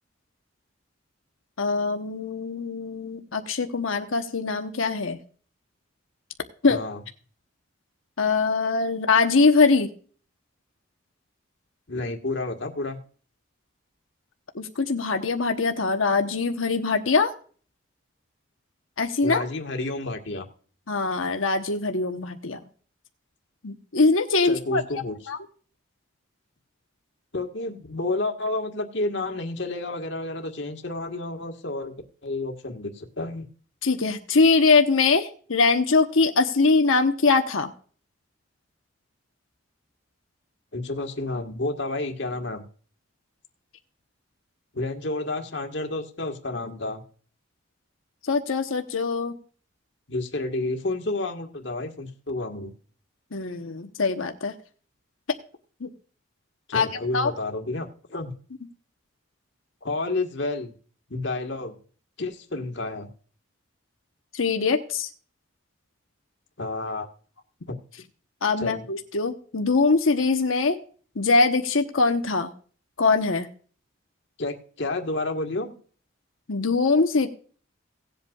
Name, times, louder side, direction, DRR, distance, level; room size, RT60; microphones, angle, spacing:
voice 1, 1.6-5.2 6.6-6.8 8.2-9.9 14.5-17.3 19.0-19.4 20.9-22.6 23.6-24.8 25.3-25.4 33.8-37.7 48.3-49.4 53.3-54.5 55.8-55.9 56.7-56.9 57.1-57.3 64.3-65.1 68.4-70.8 71.1-72.5 73.0-73.5 76.5-77.3, left 4 dB, 90° left, 6 dB, 1.1 m, -22 dB
voice 2, 6.7-7.0 11.9-13.0 19.2-20.5 24.4-25.1 27.3-31.9 32.2-33.5 40.7-42.7 44.7-47.0 50.1-52.7 56.7-58.3 59.8-60.7 61.1-61.8 62.2-63.1 66.6-67.1 67.7-67.8 68.6-68.8 74.4-75.7, left 2 dB, 65° left, 4 dB, 1.6 m, -30 dB
18.0 x 8.0 x 2.4 m, 0.43 s
head